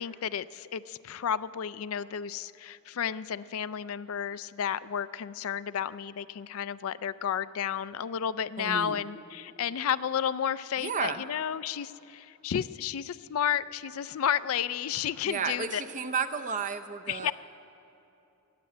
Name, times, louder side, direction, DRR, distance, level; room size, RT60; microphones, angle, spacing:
voice 1, 0.0-15.8 17.1-17.3, left 8 dB, 65° left, 15 dB, 0.4 m, -32 dB
voice 2, 8.6-9.0 10.8-11.2 15.3-17.3, right 5 dB, 35° right, 9 dB, 0.6 m, -32 dB
19.5 x 7.6 x 9.6 m, 2.8 s
head